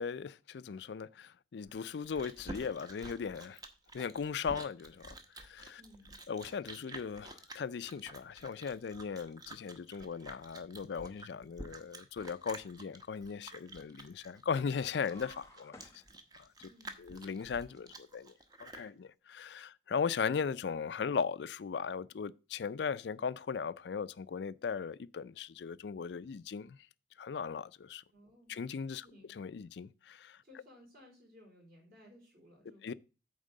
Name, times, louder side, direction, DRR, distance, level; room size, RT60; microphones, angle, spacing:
voice 1, 0.0-3.6 3.9-5.8 6.3-15.8 16.4-16.7 17.0-18.3 18.6-26.8 27.2-28.0 28.5-30.4 32.8-32.9, left 6 dB, 70° left, 0.4 m, -38 dB
Chewing mastication, 1.7-18.9, right 2 dB, 20° right, 0.8 m, -50 dB
voice 2, 5.8-6.1 16.7-17.0 28.1-28.6 29.0-29.3 30.4-32.9, left 1 dB, 55° right, 4.5 m, -59 dB
sound 1, 14.7-16.7, left 1 dB, 15° left, 0.8 m, -57 dB
8.9 x 3.6 x 6.5 m
head